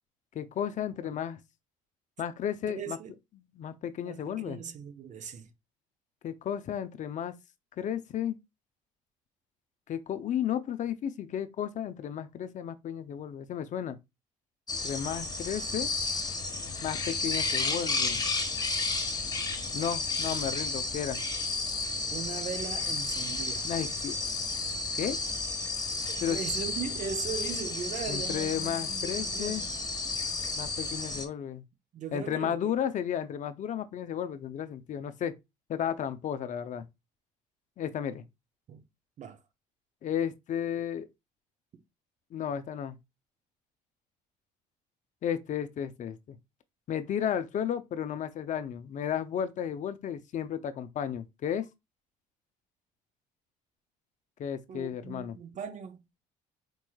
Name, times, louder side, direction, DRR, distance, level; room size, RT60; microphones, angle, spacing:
voice 1, 0.3-1.4 2.2-3.0 3.6-4.6 6.2-7.3 7.8-8.4 9.9-14.0 14.8-15.9 16.8-18.2 19.7-21.2 23.6-24.2 24.9-25.2 26.2-26.4 28.1-29.6 30.6-31.6 32.1-35.4 35.7-36.8 37.8-38.2 40.0-41.1 42.3-43.0 45.2-46.4 46.9-51.7 54.4-55.3, left 9 dB, 50° left, 0.5 m, -33 dB
voice 2, 2.7-3.1 4.0-5.5 22.1-23.7 26.1-29.7 31.9-32.7 38.7-38.9 39.2-39.4 41.7-41.8 54.7-56.0, right 7 dB, 50° right, 0.7 m, -39 dB
sound 1, 14.7-31.3, left 3 dB, 25° left, 1.2 m, -32 dB
4.5 x 3.0 x 2.3 m
supercardioid pair, 75°, 16 cm